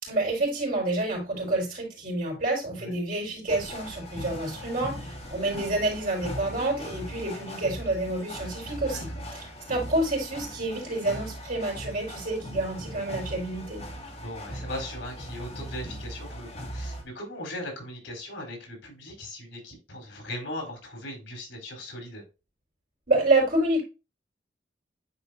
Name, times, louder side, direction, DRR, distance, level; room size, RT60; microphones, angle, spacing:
voice 1, 0.0-13.8 23.1-23.8, right 2 dB, 50° right, -1 dB, 4.3 m, -28 dB
sound 1, 3.5-17.0, equal, 35° left, 1.9 m, -39 dB
voice 2, 8.9-9.2 14.2-22.2, left 1 dB, 75° left, 2 dB, 3.7 m, -39 dB
9.9 x 4.3 x 2.6 m, 0.28 s
head